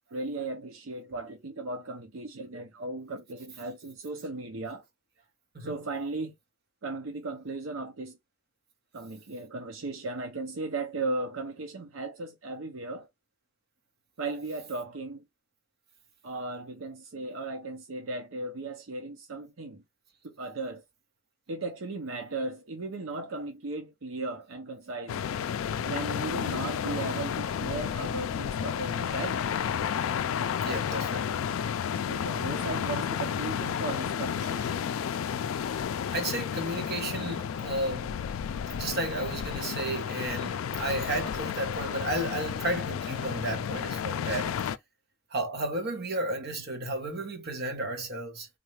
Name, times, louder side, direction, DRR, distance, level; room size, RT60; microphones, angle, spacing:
voice 1, 0.1-4.8 5.6-6.3 6.8-8.1 8.9-13.1 14.2-15.2 16.2-19.8 20.2-20.8 21.5-25.2 25.8-29.4 32.1-34.9, right 2 dB, 80° right, 0.7 m, -36 dB
sound 1, 25.1-44.8, left 8 dB, 80° left, 0.3 m, -32 dB
voice 2, 30.6-31.3 36.1-38.2 38.7-44.6 45.3-48.5, right 1 dB, 50° right, 1.2 m, -33 dB
3.9 x 2.4 x 3.1 m
head